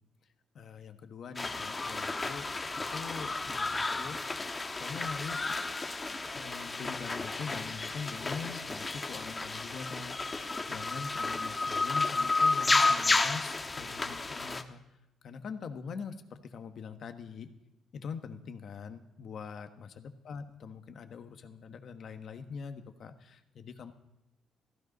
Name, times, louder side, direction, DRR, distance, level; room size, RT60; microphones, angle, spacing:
voice 1, 0.5-4.2 4.8-5.6 6.3-14.8 15.2-17.5 17.9-23.9, left 6 dB, 60° left, 7 dB, 1.3 m, -43 dB
sound 1, 1.4-14.6, left 3 dB, 25° left, 1.2 m, -32 dB
15.0 x 13.5 x 5.3 m, 0.89 s
cardioid pair, 90°, 0 cm